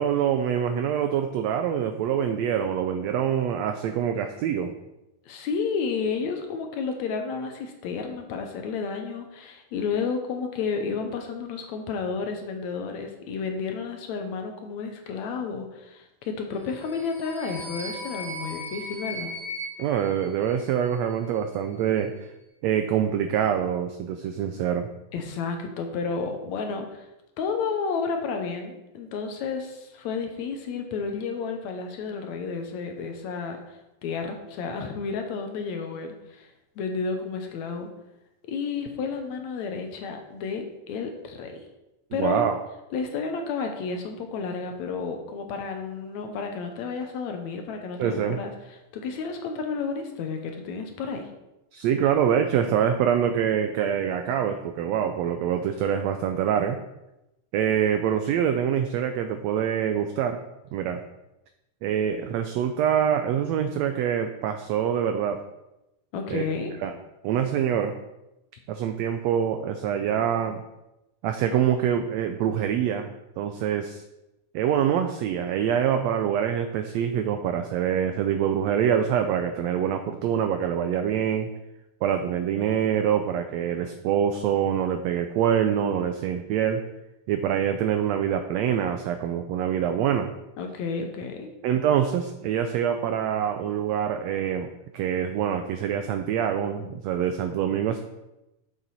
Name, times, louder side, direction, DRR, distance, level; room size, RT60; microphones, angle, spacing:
voice 1, 0.0-4.7 19.8-22.3 22.6-24.9 42.2-42.6 48.0-48.4 51.7-56.8 57.5-60.4 60.7-61.0 61.8-65.4 66.3-66.4 66.8-66.9 67.2-67.9 68.7-70.6 71.2-73.1 73.4-74.0 74.5-81.5 82.0-86.8 87.3-90.3 91.6-98.0, right 9 dB, 85° right, 7 dB, 1.5 m, -25 dB
voice 2, 5.3-19.3 25.1-27.1 27.4-36.5 36.8-37.9 38.4-41.6 42.1-42.4 42.9-48.5 48.9-51.3 66.1-66.7 90.6-91.5, left 5 dB, 70° left, 4 dB, 2.0 m, -31 dB
sound 1, 16.7-21.0, equal, 35° left, 2.1 m, -38 dB
7.5 x 6.7 x 4.1 m, 0.93 s
omnidirectional pair, 3.6 m